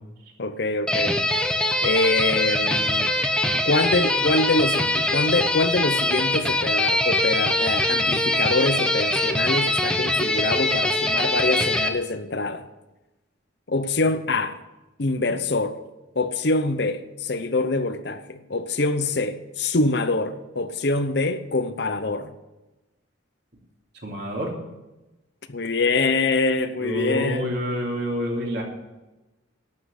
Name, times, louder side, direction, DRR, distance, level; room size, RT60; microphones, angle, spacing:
voice 1, 0.4-1.2 1.8-3.1 3.7-12.7 13.7-14.6 15.0-15.8 16.2-22.3 25.5-27.5, left 2 dB, 55° left, 0.8 m, -24 dB
sound 1, 0.9-11.9, left 1 dB, 5° left, 0.8 m, -23 dB
voice 2, 24.0-24.5 26.8-28.6, equal, 55° right, 3.1 m, -27 dB
12.0 x 7.6 x 8.2 m
head